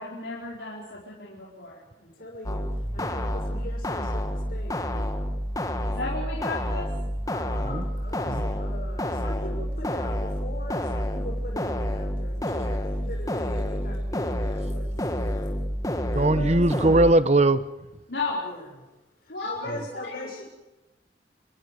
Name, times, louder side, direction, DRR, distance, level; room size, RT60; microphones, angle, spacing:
voice 1, 0.0-1.7 4.9-5.1 5.8-6.9 18.1-18.4 19.3-20.2, left 3 dB, 85° left, -4 dB, 4.8 m, -34 dB
voice 2, 2.0-2.6 2.9-4.8 7.3-15.5 16.1-16.6 18.4-18.8 19.2-20.5, left 1 dB, 55° left, 0 dB, 6.7 m, -41 dB
sound 1, 2.4-17.1, equal, 20° left, 1.8 m, -29 dB
voice 3, 16.1-17.6 19.7-19.8, right 2 dB, 40° right, 13 dB, 1.0 m, -20 dB
28.5 x 22.0 x 5.1 m, 1.0 s
head